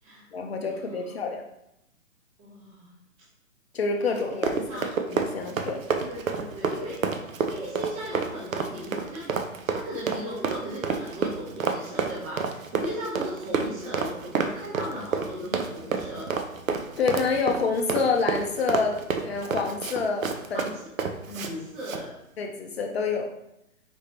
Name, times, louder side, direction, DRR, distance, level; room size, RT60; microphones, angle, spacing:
voice 1, 0.3-1.4 3.7-5.8 17.0-20.7 21.3-21.5 22.4-23.3, left 4 dB, 45° left, 3 dB, 0.6 m, -28 dB
voice 2, 2.4-2.9 4.4-5.0 5.9-7.0 7.4-9.3 9.7-16.3 20.5-20.8 21.3-22.1, equal, 25° right, -7 dB, 1.3 m, -37 dB
Run, 4.1-21.5 21.8-22.0, right 5 dB, 65° right, 0.7 m, -29 dB
5.1 x 3.5 x 2.8 m, 0.82 s
hypercardioid pair, 140°, 42 cm